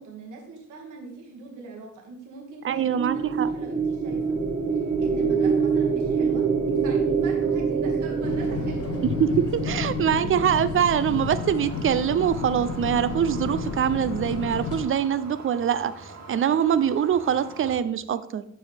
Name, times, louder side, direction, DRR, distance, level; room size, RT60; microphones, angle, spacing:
voice 1, 0.0-4.4 5.0-9.0, right 3 dB, 80° right, 0 dB, 2.2 m, -42 dB
voice 2, 2.6-3.5 9.2-18.5, right 9 dB, 45° right, 14 dB, 0.5 m, -24 dB
sound 1, 2.7-11.2, right 5 dB, 25° right, 1.3 m, -26 dB
sound 2, 8.2-14.9, left 5 dB, 50° left, 0.9 m, -31 dB
sound 3, 10.9-17.8, right 3 dB, 60° right, 2.4 m, -44 dB
10.5 x 4.6 x 3.4 m, 0.74 s
cardioid pair, 90°, 30 cm